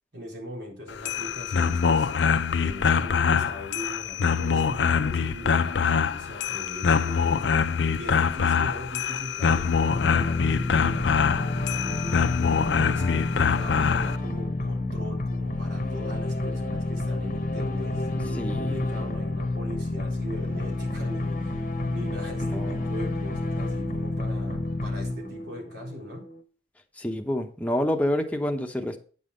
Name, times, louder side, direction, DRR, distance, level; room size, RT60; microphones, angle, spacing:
voice 1, 0.1-2.1 2.6-7.4 7.9-12.3 12.8-26.2, equal, 75° right, -1 dB, 3.8 m, -40 dB
sound 1, 0.9-14.2, left 6 dB, 80° left, 0.5 m, -24 dB
sound 2, 9.9-26.4, left 2 dB, 45° left, 0.9 m, -30 dB
voice 2, 18.4-18.7 22.5-22.9 27.0-29.0, left 1 dB, 10° left, 3 dB, 0.9 m, -28 dB
9.3 x 5.6 x 5.3 m, 0.40 s
head